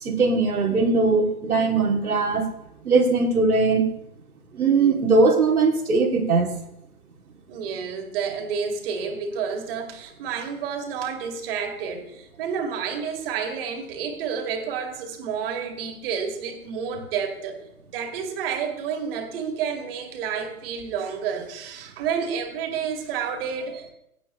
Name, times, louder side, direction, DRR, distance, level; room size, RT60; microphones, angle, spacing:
voice 1, 0.0-2.4 2.8-3.9 4.5-6.5, right 3 dB, 85° right, 1 dB, 3.1 m, -20 dB
voice 2, 7.5-17.6 17.9-23.9, right 6 dB, 40° right, 4 dB, 2.5 m, -30 dB
16.0 x 9.0 x 3.3 m, 0.79 s
hypercardioid pair, 130°, 43 cm